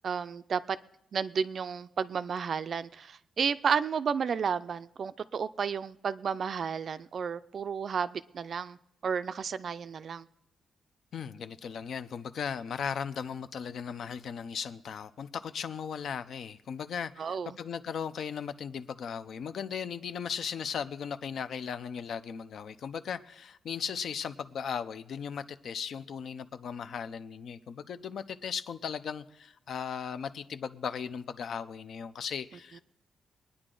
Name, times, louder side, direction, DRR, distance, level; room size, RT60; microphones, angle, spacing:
voice 1, 0.0-0.8 1.1-8.8 9.0-10.3 17.2-17.6, right 6 dB, 45° right, 0.4 m, -32 dB
voice 2, 11.1-32.8, left 7 dB, 60° left, 0.6 m, -37 dB
22.5 x 9.8 x 3.8 m
wide cardioid pair, 155°, 0 cm